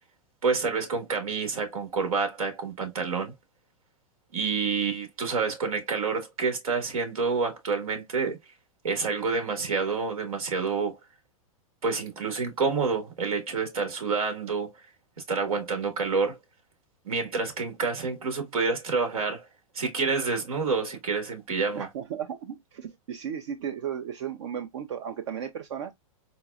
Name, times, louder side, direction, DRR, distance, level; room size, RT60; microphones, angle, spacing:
voice 1, 0.4-3.3 4.3-8.4 8.8-11.0 11.8-14.7 15.3-16.4 17.0-19.4 19.7-21.9, right 4 dB, 90° right, 1.7 m, -28 dB
voice 2, 21.8-25.9, right 8 dB, 55° right, 0.5 m, -35 dB
4.0 x 3.0 x 2.3 m
hypercardioid pair, 160°, 18 cm